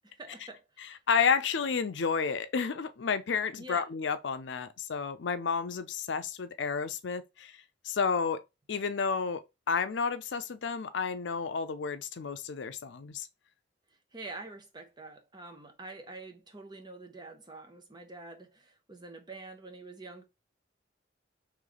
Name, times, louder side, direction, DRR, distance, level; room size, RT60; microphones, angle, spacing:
voice 1, 0.2-1.0 3.6-3.9 14.1-20.2, right 2 dB, 25° right, 0.8 m, -46 dB
voice 2, 1.1-7.5 7.8-8.4 8.7-13.3, left 5 dB, 70° left, 0.5 m, -31 dB
3.2 x 3.1 x 3.8 m
head